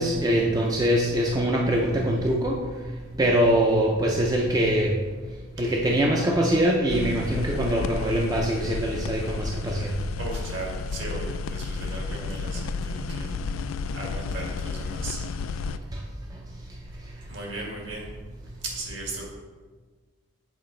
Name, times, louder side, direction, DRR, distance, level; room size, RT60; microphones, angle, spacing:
voice 1, 0.0-2.6 3.2-4.9 5.6-9.9, right 1 dB, 20° right, -1 dB, 0.5 m, -23 dB
sound 1, 6.9-15.8, left 4 dB, 80° left, 0.3 m, -32 dB
voice 2, 10.2-13.3 13.9-15.2 17.3-18.1 18.6-19.3, right 2 dB, 65° right, -2 dB, 1.7 m, -36 dB
7.3 x 4.8 x 3.8 m, 1.4 s
head